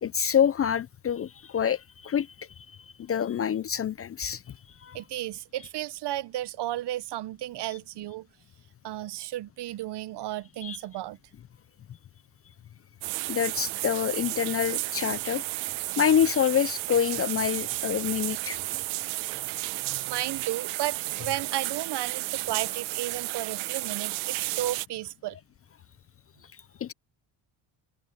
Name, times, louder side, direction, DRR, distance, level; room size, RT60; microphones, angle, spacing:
voice 1, 0.0-5.0 10.6-10.8 13.3-15.4 16.0-18.6 26.5-26.9, left 8 dB, 30° left, 0.5 m, -27 dB
voice 2, 4.9-8.3 8.8-11.2 18.8-19.0 19.8-25.4, right 14 dB, 55° right, 0.9 m, -34 dB
sound 1, 13.0-24.9, right 20 dB, 85° right, 1.4 m, -33 dB
supercardioid pair, 90°, 48 cm